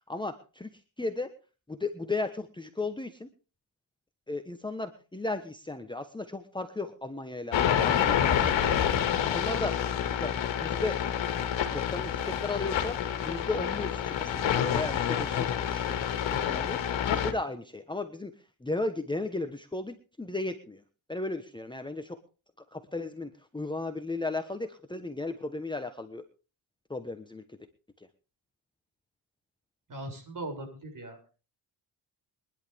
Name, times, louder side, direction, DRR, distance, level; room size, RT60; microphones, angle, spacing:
voice 1, 0.1-1.3 1.7-3.3 4.3-8.9 9.2-9.9 10.2-10.3 10.6-11.0 11.7-16.0 16.3-20.8 21.1-22.2 22.7-26.2 26.9-27.6 28.0-28.1, left 2 dB, 10° left, 7 dB, 1.2 m, -35 dB
sound 1, 7.5-17.3, left 9 dB, 65° left, 2.2 m, -28 dB
voice 2, 29.9-31.3, right 2 dB, 40° right, 4 dB, 7.0 m, -39 dB
23.5 x 11.0 x 3.6 m, 0.34 s
cardioid pair, 95°, 47 cm